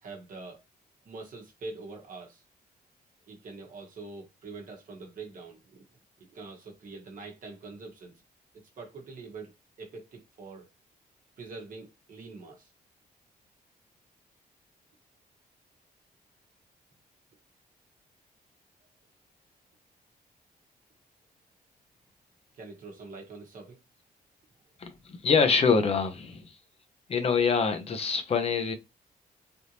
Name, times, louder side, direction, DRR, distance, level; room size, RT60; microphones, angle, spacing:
voice 1, 0.0-0.6 1.0-2.4 3.3-5.9 6.3-8.2 8.8-9.5 9.8-10.7 11.4-12.7 22.5-23.8, right 3 dB, 55° right, 1.1 m, -44 dB
voice 2, 24.8-26.5 27.1-28.7, left 5 dB, 40° left, 0.7 m, -25 dB
3.5 x 2.6 x 2.9 m
cardioid pair, 120°, 16 cm